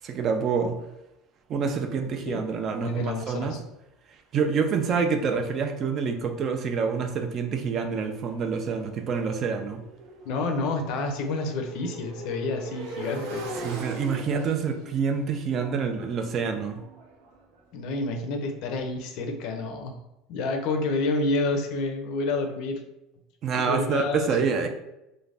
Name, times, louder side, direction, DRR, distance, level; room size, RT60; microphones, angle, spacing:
voice 1, 0.0-0.8 1.5-3.5 4.3-9.8 13.6-16.8 23.4-24.7, right 5 dB, 35° right, 5 dB, 0.3 m, -27 dB
voice 2, 2.8-3.6 10.2-13.4 17.7-19.9 20.3-22.8 23.6-24.3 24.6-24.7, left 3 dB, 60° left, 5 dB, 0.4 m, -29 dB
Motorcycle, 7.9-17.8, right 2 dB, 85° right, 0.6 m, -41 dB
2.4 x 2.1 x 3.2 m, 0.90 s
cardioid pair, 150°, 0 cm